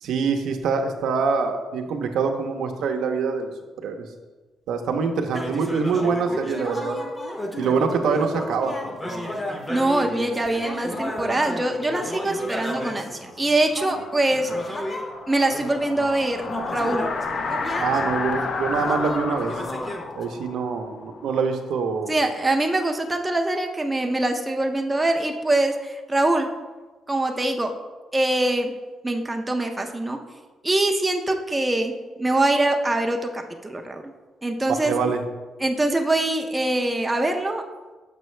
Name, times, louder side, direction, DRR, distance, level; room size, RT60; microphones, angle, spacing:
voice 1, 0.0-3.5 3.8-4.0 4.7-7.0 7.6-8.7 17.8-19.5 20.1-22.1 34.8-35.2, right 5 dB, 85° right, 4 dB, 0.7 m, -24 dB
sound 1, 5.3-15.1 15.5-20.2, equal, 15° left, 0.8 m, -33 dB
voice 2, 9.7-14.8 15.3-16.4 16.7-17.1 22.1-26.5 27.1-27.7 28.1-28.7 29.0-30.2 30.6-34.1 34.4-34.9 35.6-37.6, right 2 dB, 15° right, 4 dB, 0.5 m, -23 dB
sound 2, 13.3-22.1, left 4 dB, 50° left, 0.5 m, -32 dB
6.7 x 5.5 x 3.2 m, 1.2 s
cardioid pair, 125°, 0 cm